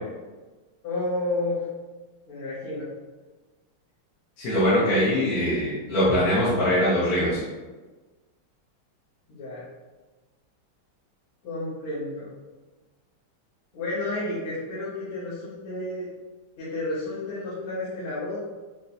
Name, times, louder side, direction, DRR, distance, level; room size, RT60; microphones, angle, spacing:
voice 1, 0.8-1.7 2.3-2.9 4.7-5.3 9.3-9.6 11.4-12.4 13.7-16.1 16.6-18.4, left 2 dB, 80° left, -12 dB, 2.3 m, -31 dB
voice 2, 4.4-7.4, equal, 55° left, -10 dB, 1.4 m, -22 dB
5.4 x 3.0 x 2.6 m, 1.2 s
omnidirectional pair, 2.3 m